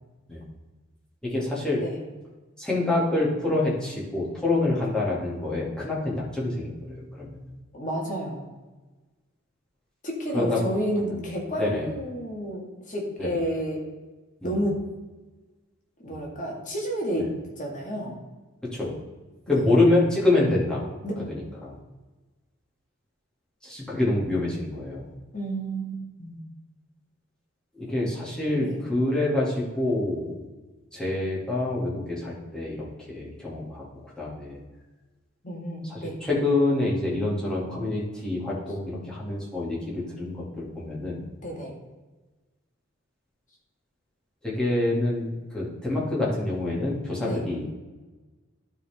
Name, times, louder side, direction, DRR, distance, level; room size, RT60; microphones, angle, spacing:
voice 1, 1.2-1.8 2.6-7.5 10.3-10.6 11.1-11.2 11.6-11.9 13.2-13.4 14.4-14.6 16.1-16.2 17.1-17.3 18.7-18.9 19.5-20.9 21.3-21.8 23.6-25.1 27.7-30.4 30.9-33.8 34.2-34.6 35.8-41.3 44.4-47.7, left 2 dB, 5° left, -7 dB, 2.5 m, -26 dB
voice 2, 7.7-8.5 10.0-13.9 14.4-14.9 16.0-17.3 17.6-18.2 19.5-19.7 21.0-21.1 25.3-26.4 28.6-28.8 35.4-36.2 41.4-41.7 47.2-47.5, equal, 40° left, -2 dB, 2.0 m, -30 dB
12.0 x 4.8 x 3.6 m, 1.2 s
head